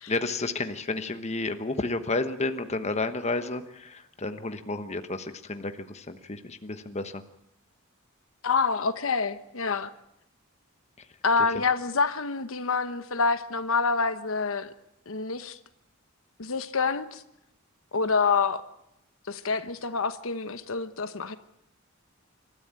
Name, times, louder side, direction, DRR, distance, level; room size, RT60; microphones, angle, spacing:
voice 1, 0.1-7.2 11.0-11.1, left 2 dB, 30° left, 8 dB, 1.1 m, -31 dB
voice 2, 8.4-9.9 11.2-14.7 15.1-15.6 16.4-17.2 17.9-18.6 19.3-21.4, left 4 dB, 70° left, 11 dB, 1.1 m, -27 dB
27.5 x 13.5 x 8.9 m, 0.83 s
head